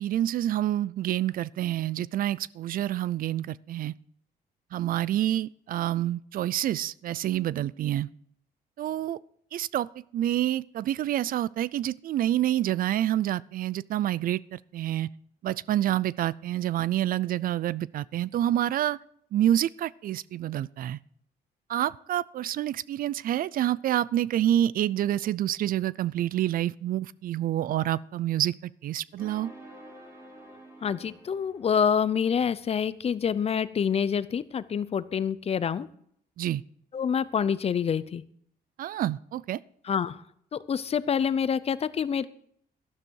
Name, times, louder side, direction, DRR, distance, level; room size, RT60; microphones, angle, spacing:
voice 1, 0.0-3.9 4.7-8.1 8.8-9.2 9.5-15.1 15.4-19.0 19.3-21.0 21.7-29.5 36.4-36.6 38.8-39.6, right 12 dB, 60° right, 22 dB, 0.4 m, -28 dB
sound 1, 29.2-32.2, right 1 dB, 15° right, 4.0 m, -49 dB
voice 2, 30.8-35.9 36.9-38.2 39.8-40.2 40.5-42.3, left 7 dB, 40° left, 16 dB, 0.6 m, -27 dB
12.0 x 12.0 x 4.6 m, 0.67 s
cardioid pair, 110°, 16 cm